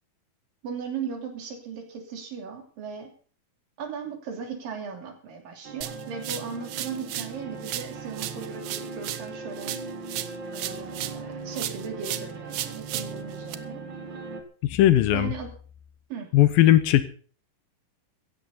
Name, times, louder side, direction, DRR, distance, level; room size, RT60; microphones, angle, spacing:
voice 1, 0.6-3.1 3.8-9.8 10.5-13.8 15.1-15.5 16.1-16.3, right 6 dB, 65° right, 3 dB, 4.7 m, -37 dB
sound 1, 5.6-14.4, right 3 dB, 45° right, 1.5 m, -39 dB
sound 2, 5.8-7.4 7.6-11.3 11.5-13.5, right 12 dB, 85° right, 1.5 m, -35 dB
voice 2, 14.6-15.3 16.3-17.1, left 13 dB, 75° left, 13 dB, 2.6 m, -18 dB
16.5 x 14.0 x 4.1 m, 0.42 s
omnidirectional pair, 4.3 m